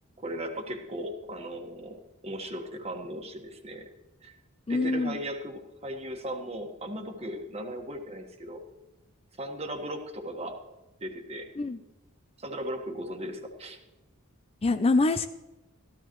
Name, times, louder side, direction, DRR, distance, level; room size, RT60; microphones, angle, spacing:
voice 1, 0.2-3.9 4.2-4.4 4.7-8.6 9.4-10.6 11.0-11.5 12.4-13.8, right 1 dB, 30° right, 4 dB, 1.4 m, -37 dB
voice 2, 4.7-5.2 11.6-11.8 14.6-15.3, left 3 dB, 25° left, 10 dB, 0.4 m, -25 dB
14.5 x 13.0 x 3.1 m, 1.0 s
head